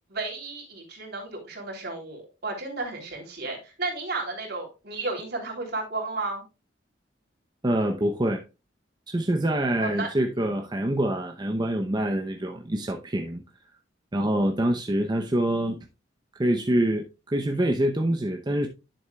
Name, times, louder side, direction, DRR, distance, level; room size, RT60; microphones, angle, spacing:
voice 1, 0.1-6.4 9.8-10.1, right 3 dB, 60° right, 3.3 m, -33 dB
voice 2, 7.6-8.4 9.1-13.4 14.1-15.8 16.4-18.7, right 1 dB, 25° right, 0.7 m, -25 dB
10.5 x 7.0 x 2.3 m
head